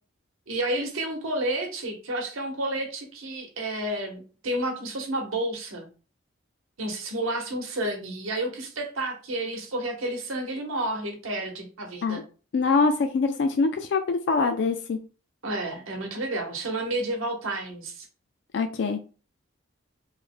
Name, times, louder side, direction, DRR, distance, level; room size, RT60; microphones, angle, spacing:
voice 1, 0.5-5.9 6.8-12.2 15.4-18.1, right 1 dB, 90° right, 2 dB, 0.9 m, -30 dB
voice 2, 12.5-15.0 18.5-19.0, left 4 dB, 60° left, 7 dB, 0.3 m, -24 dB
3.1 x 2.1 x 3.6 m, 0.36 s
head